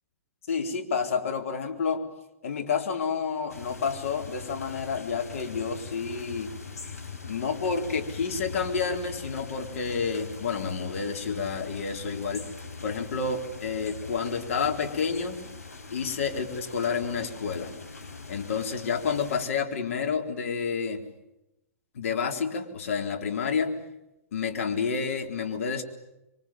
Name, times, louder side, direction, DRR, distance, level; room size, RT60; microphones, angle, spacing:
voice 1, 0.5-2.0 2.4-6.5 7.3-12.5 12.8-15.4 15.9-17.7 18.3-21.0 21.9-23.7 24.3-25.8, left 5 dB, 60° left, 4 dB, 3.9 m, -29 dB
sound 1, 3.5-19.5, left 4 dB, 85° left, 5.0 m, -42 dB
26.5 x 23.5 x 9.1 m, 0.91 s
hypercardioid pair, 115°, 8 cm